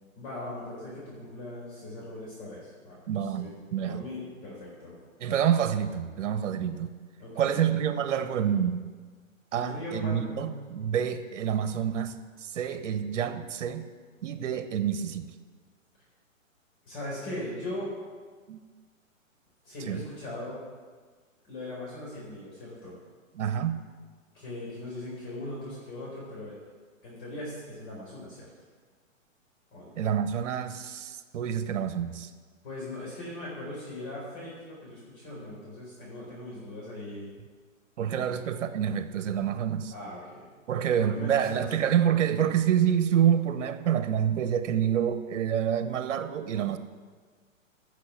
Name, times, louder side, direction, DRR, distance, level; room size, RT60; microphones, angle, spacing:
voice 1, 0.2-3.0 3.3-3.5 3.9-4.9 7.2-7.7 9.5-10.7 16.9-17.9 19.6-20.6 21.4-23.0 24.3-26.5 27.0-28.5 29.7-29.9 32.6-37.3 38.1-38.4 39.9-41.9, left 1 dB, 40° left, -6 dB, 4.3 m, -39 dB
voice 2, 3.1-4.0 5.2-6.9 7.4-8.8 9.5-13.9 14.2-15.3 18.5-18.6 19.9-20.0 23.3-23.8 30.0-32.3 38.0-39.9 40.7-46.8, right 9 dB, 60° right, 11 dB, 1.1 m, -27 dB
15.0 x 6.8 x 5.7 m, 1.5 s
hypercardioid pair, 140°, 40 cm